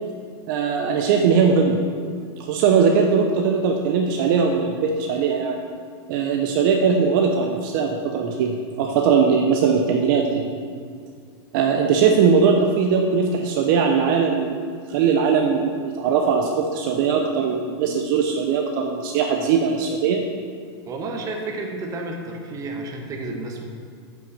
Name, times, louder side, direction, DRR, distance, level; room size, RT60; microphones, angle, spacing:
voice 1, 0.5-1.8 2.4-5.6 6.1-10.4 11.5-20.2, right 6 dB, 50° right, 2 dB, 0.9 m, -20 dB
voice 2, 20.9-23.6, right 2 dB, 25° right, 2 dB, 1.4 m, -31 dB
9.2 x 6.1 x 7.0 m, 2.1 s
supercardioid pair, 145°, 14 cm